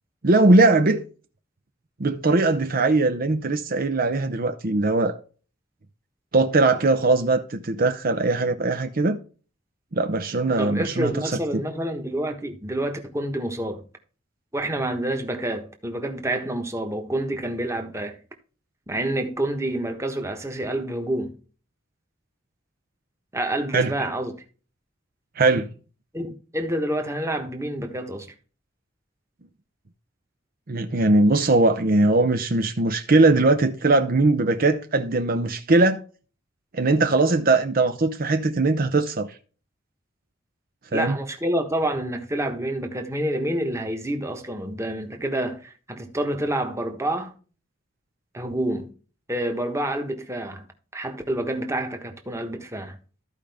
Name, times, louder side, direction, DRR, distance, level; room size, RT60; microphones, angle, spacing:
voice 1, 0.2-1.0 2.0-5.2 6.3-9.2 9.9-11.1 23.7-23.9 25.4-25.7 30.7-36.0 36.7-39.3 40.9-41.2, right 2 dB, 50° right, 0.7 m, -20 dB
voice 2, 10.6-13.8 14.5-18.2 18.9-21.3 23.3-24.4 26.1-28.3 40.9-47.3 48.3-48.9 49.3-50.7 50.9-53.0, right 1 dB, 15° right, 1.3 m, -28 dB
14.0 x 5.0 x 3.5 m
head